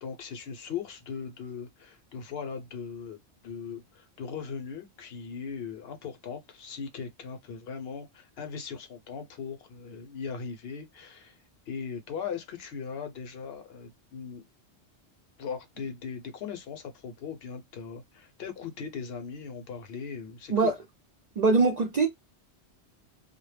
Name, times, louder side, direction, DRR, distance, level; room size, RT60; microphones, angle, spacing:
voice 1, 0.0-3.2 3.4-11.4 11.7-14.4 15.4-20.7, left 6 dB, 65° left, 0.8 m, -39 dB
voice 2, 21.4-22.1, right 4 dB, 60° right, 0.4 m, -22 dB
2.1 x 2.0 x 3.1 m
omnidirectional pair, 1.2 m